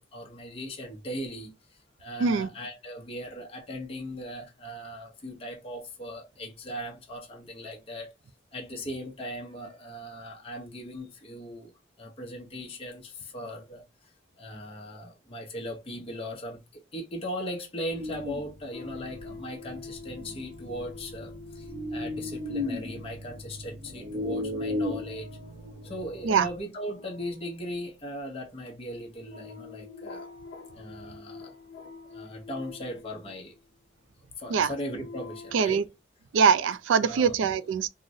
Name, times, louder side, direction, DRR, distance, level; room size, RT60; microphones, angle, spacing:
voice 1, 0.0-8.1 8.5-11.7 12.0-25.4 25.8-30.3 30.7-31.6 32.0-33.6 34.4-35.8 37.0-37.6, equal, 30° left, 0.7 m, -39 dB
sound 1, 17.9-26.6, left 2 dB, 25° right, 0.5 m, -36 dB
sound 2, 18.7-33.8 34.5-35.8, left 4 dB, 75° left, 0.5 m, -47 dB
voice 2, 35.5-35.8 36.3-37.9, right 6 dB, 80° right, 0.3 m, -23 dB
3.8 x 2.0 x 2.6 m
head